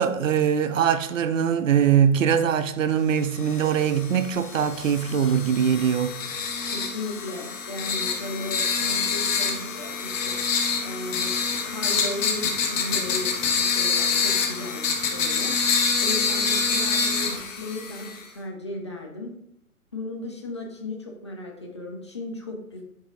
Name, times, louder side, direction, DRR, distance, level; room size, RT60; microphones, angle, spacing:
voice 1, 0.0-6.2, right 8 dB, 65° right, 0.5 m, -22 dB
sound 1, 3.4-18.3, left 5 dB, 60° left, 1.1 m, -26 dB
voice 2, 6.7-19.4 19.9-22.8, left 2 dB, 20° left, 0.4 m, -36 dB
4.7 x 2.7 x 3.7 m
figure-of-eight pair, 125°, 44 cm